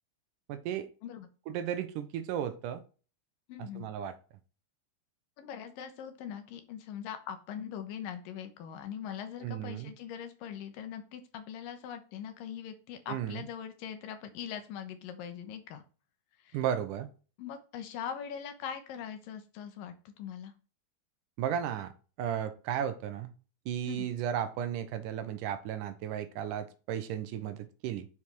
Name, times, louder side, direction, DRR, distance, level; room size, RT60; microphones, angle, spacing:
voice 1, 0.5-0.9 1.5-2.8 3.6-4.1 9.4-9.9 13.1-13.4 16.5-17.1 21.4-21.9 22.2-23.3 23.7-28.1, right 9 dB, 80° right, 2.2 m, -34 dB
voice 2, 3.5-3.9 5.4-15.8 16.5-16.6 17.4-20.5 23.9-24.1, left 8 dB, 85° left, 2.7 m, -41 dB
7.2 x 4.8 x 4.5 m
omnidirectional pair, 3.9 m